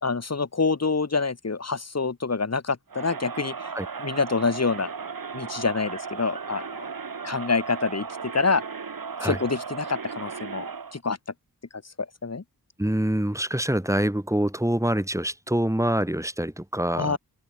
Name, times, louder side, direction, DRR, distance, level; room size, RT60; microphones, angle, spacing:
voice 1, 0.0-3.7 4.0-4.9 5.3-6.9 7.2-8.6 9.2-10.7 10.9-11.2 12.0-12.4 16.9-17.2, left 4 dB, 45° left, 3.6 m, -26 dB
Crowd, 2.9-11.0, right 5 dB, 65° right, 5.6 m, -36 dB
voice 2, 12.8-17.2, right 1 dB, 10° right, 5.8 m, -25 dB
cardioid pair, 60°, 37 cm